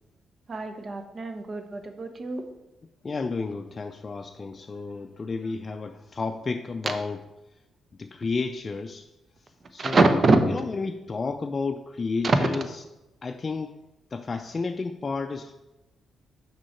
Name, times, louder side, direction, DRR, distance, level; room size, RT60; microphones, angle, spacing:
voice 1, 0.5-2.5 5.4-5.5 6.8-6.9 9.8-10.4 12.2-12.5, right 3 dB, 50° right, 7 dB, 0.9 m, -23 dB
voice 2, 3.0-7.2 8.0-9.1 9.7-10.2 10.5-12.6 13.2-13.8 14.1-15.5, left 4 dB, 40° left, 5 dB, 0.4 m, -31 dB
6.2 x 4.5 x 4.4 m, 0.98 s
supercardioid pair, 50°, 0 cm